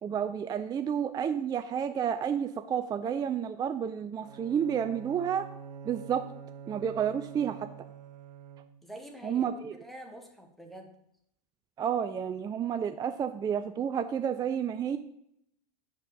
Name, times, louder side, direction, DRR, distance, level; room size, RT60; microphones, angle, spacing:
voice 1, 0.0-5.5 5.8-6.3 6.7-7.7 9.2-9.7 11.8-15.0, right 8 dB, 20° right, 9 dB, 0.4 m, -30 dB
Bowed string instrument, 4.2-9.0, right 7 dB, 85° right, 0.6 m, -47 dB
voice 2, 8.8-10.9, equal, ahead, 1 dB, 1.4 m, -46 dB
6.5 x 5.2 x 6.9 m, 0.73 s
hypercardioid pair, 100°, 20 cm